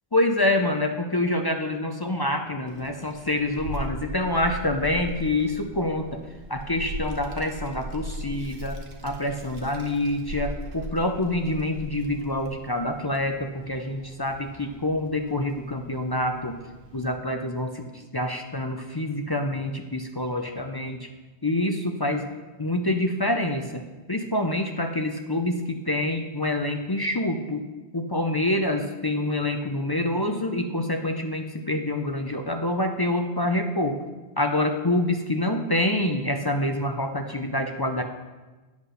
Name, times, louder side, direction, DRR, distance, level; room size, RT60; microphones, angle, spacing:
voice 1, 0.1-6.2 6.5-16.5 16.9-21.1 21.4-22.3 22.6-23.8 24.1-27.6 27.9-34.0 34.4-38.0, left 1 dB, 30° left, 4 dB, 0.5 m, -26 dB
Child speech kid speaking, 2.7-17.1, right 1 dB, 70° right, 1.3 m, -39 dB
10.0 x 5.2 x 6.3 m, 1.2 s
omnidirectional pair, 1.1 m